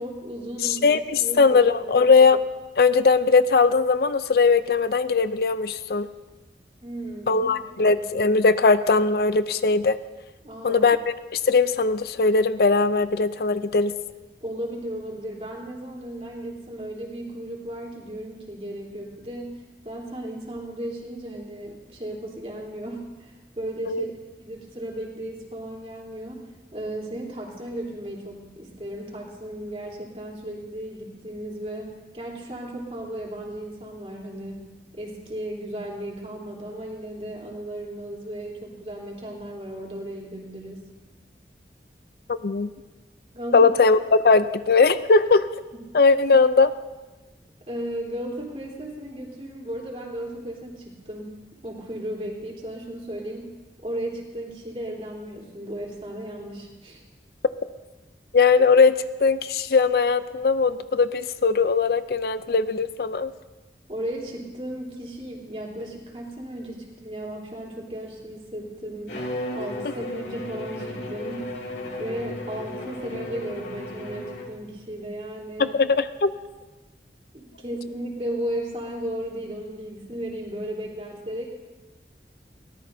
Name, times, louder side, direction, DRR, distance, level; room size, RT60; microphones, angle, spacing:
voice 1, 0.0-0.9 1.2-2.0 6.8-8.0 10.4-10.9 14.4-24.1 24.4-34.7 34.9-40.8 43.3-43.7 45.7-45.8 47.7-51.4 51.6-53.5 53.8-57.0 63.9-69.2 69.5-71.5 72.0-75.8 77.3-81.5, right 1 dB, 35° right, -3 dB, 3.5 m, -35 dB
voice 2, 0.6-2.4 2.8-6.1 7.3-10.0 10.6-11.0 11.3-13.9 23.9-24.1 42.3-42.7 43.5-45.5 45.9-46.7 58.3-63.3 75.6-76.3, left 4 dB, 55° left, 13 dB, 0.5 m, -19 dB
Bowed string instrument, 69.1-74.7, left 1 dB, 80° left, 2.5 m, -35 dB
23.5 x 17.5 x 2.7 m, 1.2 s
head